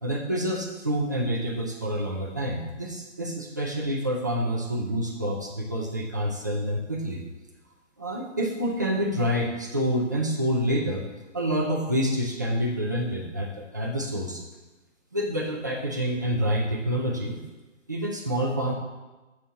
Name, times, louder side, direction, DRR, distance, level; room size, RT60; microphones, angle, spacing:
voice 1, 0.0-7.2 8.0-11.0 11.3-14.4 15.1-17.4 17.9-18.7, equal, 15° right, -2 dB, 0.4 m, -27 dB
7.0 x 4.3 x 6.2 m, 1.1 s
figure-of-eight pair, 145°, 37 cm